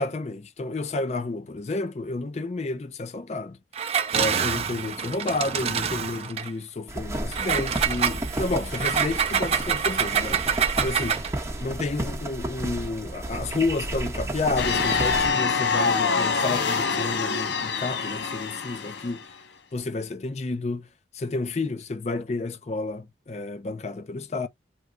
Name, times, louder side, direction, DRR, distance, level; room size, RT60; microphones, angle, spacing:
voice 1, 0.0-3.6 4.1-11.2 11.6-19.2 19.7-20.9 21.1-24.5, left 3 dB, 40° left, 0.4 m, -30 dB
Engine, 3.7-6.5 7.3-11.4, right 7 dB, 35° right, 0.4 m, -26 dB
sound 1, 6.9-15.3, right 1 dB, 15° right, 1.0 m, -32 dB
sound 2, 14.6-19.2, left 5 dB, 80° left, 0.6 m, -25 dB
3.0 x 2.3 x 3.6 m
head